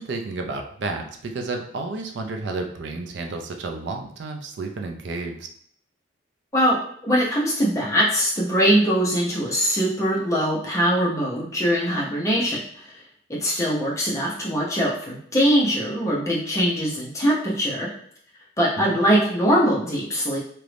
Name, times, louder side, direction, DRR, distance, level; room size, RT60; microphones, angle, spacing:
voice 1, 0.0-5.5 18.8-19.0, right 3 dB, 65° right, 4 dB, 0.4 m, -31 dB
voice 2, 7.0-13.0 13.3-17.9 18.6-20.4, equal, 15° left, -5 dB, 0.7 m, -22 dB
2.9 x 2.5 x 3.3 m, 0.63 s
head